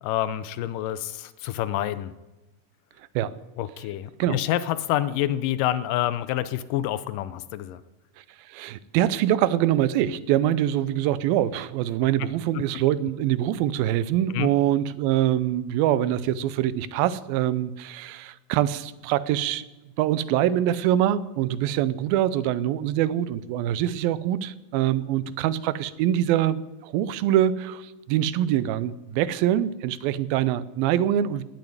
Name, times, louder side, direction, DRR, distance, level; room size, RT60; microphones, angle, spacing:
voice 1, 0.0-2.1 3.6-7.8 12.6-12.7 14.3-14.5, left 13 dB, 80° left, 15 dB, 2.1 m, -27 dB
voice 2, 8.5-19.6 20.0-31.4, right 12 dB, 90° right, 17 dB, 2.5 m, -24 dB
18.0 x 7.2 x 9.4 m, 1.1 s
omnidirectional pair, 4.1 m